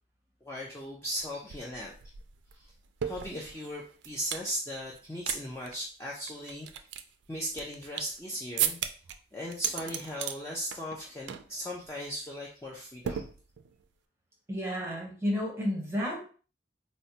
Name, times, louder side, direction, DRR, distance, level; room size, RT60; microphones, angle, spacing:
voice 1, 0.4-1.9 2.5-2.7 3.0-6.7 7.3-8.8 9.3-13.3, equal, 15° left, -4 dB, 0.4 m, -37 dB
sound 1, 1.2-1.3 1.5-4.5 4.9-5.4 5.6-5.7 6.3-8.2 8.6-9.1 9.5-10.4 10.7-11.0 11.3-11.5 11.8-12.1 13.0-13.8, right 9 dB, 85° right, 0.3 m, -35 dB
voice 2, 14.5-16.2, equal, 15° right, -3 dB, 0.9 m, -31 dB
4.3 x 2.1 x 2.7 m, 0.40 s
head